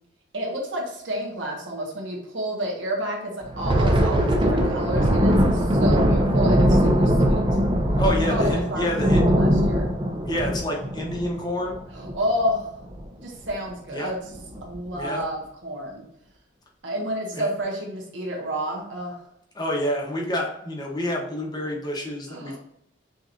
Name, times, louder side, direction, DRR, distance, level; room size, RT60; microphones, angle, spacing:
voice 1, 0.3-7.4 8.3-9.9 11.9-12.7 13.2-14.2 14.6-16.0 16.8-19.2 22.3-22.6, equal, 80° right, -2 dB, 1.5 m, -30 dB
Thunder, 3.4-12.5 12.8-13.0 13.4-13.7 14.3-14.8, equal, 25° right, 0.6 m, -21 dB
voice 2, 8.0-9.2 10.2-11.8 13.9-14.1 14.9-15.2 17.3-17.5 19.5-22.6, equal, 20° left, -1 dB, 0.9 m, -28 dB
6.2 x 3.0 x 2.6 m, 0.76 s
head